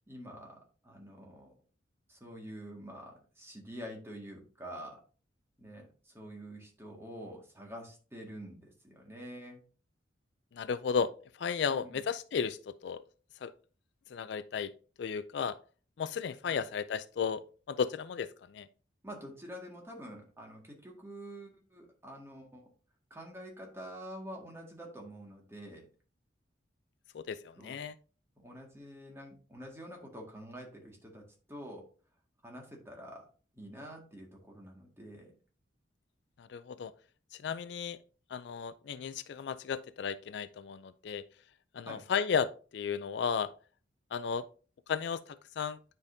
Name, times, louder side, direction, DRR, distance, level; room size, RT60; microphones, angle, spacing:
voice 1, 0.1-0.6 0.8-1.5 2.1-5.0 5.6-9.6 11.7-12.0 16.5-16.6 19.0-22.7 23.1-25.9 27.6-27.7 28.4-31.2 31.5-31.8 32.4-33.3 33.5-35.3 41.9-42.0, equal, 15° right, 1.7 m, -47 dB
voice 2, 10.5-11.1 11.4-13.0 13.4-13.5 14.1-14.7 15.0-15.6 16.0-17.4 17.7-18.7 27.1-27.9 36.4-36.9 37.3-38.0 38.3-41.2 41.7-43.5 44.1-44.5 44.9-45.8, left 6 dB, 60° left, 0.3 m, -34 dB
9.6 x 5.1 x 2.6 m
head